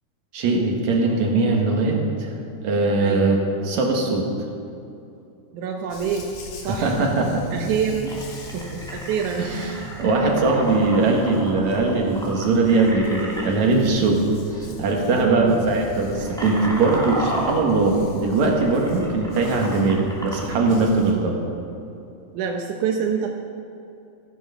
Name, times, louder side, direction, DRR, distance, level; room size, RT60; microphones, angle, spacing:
voice 1, 0.3-2.3 2.6-4.2 6.7-7.4 9.4-14.2 14.8-21.4, right 3 dB, 70° right, 0 dB, 3.0 m, -21 dB
voice 2, 3.0-3.3 5.5-6.3 6.6-6.9 7.5-8.2 8.5-9.5 14.7-14.8 15.1-15.7 22.3-23.3, right 7 dB, 90° right, 2 dB, 2.4 m, -26 dB
Dog, 5.9-21.1, left 1 dB, 70° left, 3.0 m, -40 dB
sound 1, 8.1-13.5 14.5-14.7 15.0-15.3 15.8-20.6, equal, ahead, 2.1 m, -33 dB
16.0 x 10.0 x 5.7 m, 2.7 s
omnidirectional pair, 3.4 m